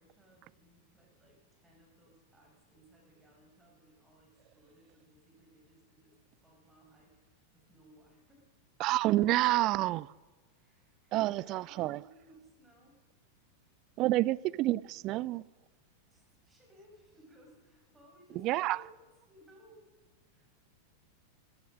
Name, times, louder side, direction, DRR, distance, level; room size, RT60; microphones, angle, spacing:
voice 1, 0.0-8.5 10.6-13.0 14.1-14.3 16.1-19.8 20.3-20.5, equal, 10° right, 5.9 m, -61 dB
voice 2, 8.8-10.1 11.1-12.0 14.0-15.4 18.4-18.8, right 17 dB, 40° right, 0.4 m, -28 dB
15.0 x 12.5 x 6.4 m
figure-of-eight pair, 90°, 0 cm